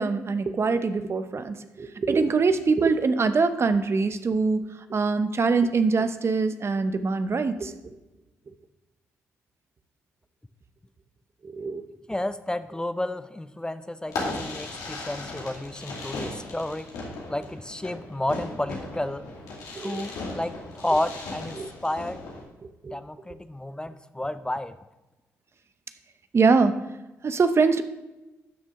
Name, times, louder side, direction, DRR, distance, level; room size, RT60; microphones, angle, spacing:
voice 1, 0.0-7.7 11.4-11.8 19.8-20.0 21.6-21.7 22.8-23.0 26.3-26.8 27.2-27.8, right 4 dB, 45° right, 10 dB, 0.8 m, -23 dB
voice 2, 12.1-16.9 17.3-19.3 19.7-22.2 22.9-24.8, left 1 dB, 15° left, 12 dB, 0.5 m, -31 dB
Fireworks, 14.1-22.4, left 2 dB, 85° left, 2.3 m, -37 dB
12.5 x 6.3 x 3.7 m, 1.0 s
supercardioid pair, 50°, 6 cm